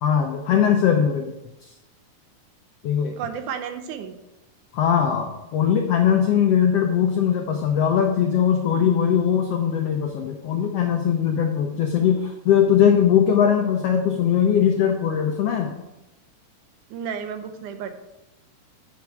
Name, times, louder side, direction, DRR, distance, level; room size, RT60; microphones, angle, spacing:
voice 1, 0.0-1.3 1.6-1.7 2.8-3.2 4.7-15.7, left 8 dB, 80° left, 3 dB, 1.4 m, -20 dB
voice 2, 3.2-4.2 16.9-18.0, right 7 dB, 80° right, 8 dB, 2.1 m, -32 dB
8.4 x 6.2 x 4.7 m, 0.93 s
omnidirectional pair, 3.7 m